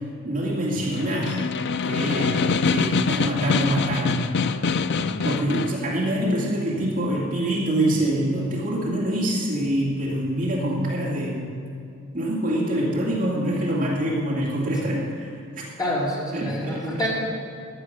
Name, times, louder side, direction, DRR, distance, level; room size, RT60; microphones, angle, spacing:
voice 1, 0.2-1.4 1.8-4.7 5.2-11.6 12.1-15.6 16.3-16.9, right 1 dB, 40° right, -4 dB, 2.5 m, -25 dB
Snare drum, 0.8-5.8, left 5 dB, 55° left, 0.5 m, -25 dB
voice 2, 15.8-17.1, equal, 20° left, -7 dB, 4.3 m, -28 dB
14.5 x 11.0 x 6.7 m, 2.6 s
head